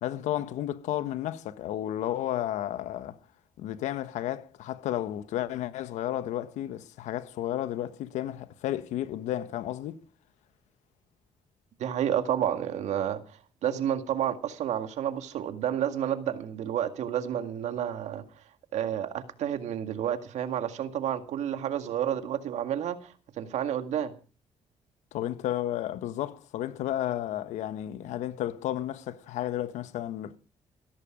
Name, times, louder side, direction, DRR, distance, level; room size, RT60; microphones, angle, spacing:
voice 1, 0.0-3.2 3.6-10.0 25.1-30.4, left 12 dB, 85° left, 1.3 m, -32 dB
voice 2, 11.8-18.2 18.7-24.1, right 10 dB, 75° right, 1.9 m, -30 dB
16.0 x 14.0 x 5.0 m
cardioid pair, 75°, 12 cm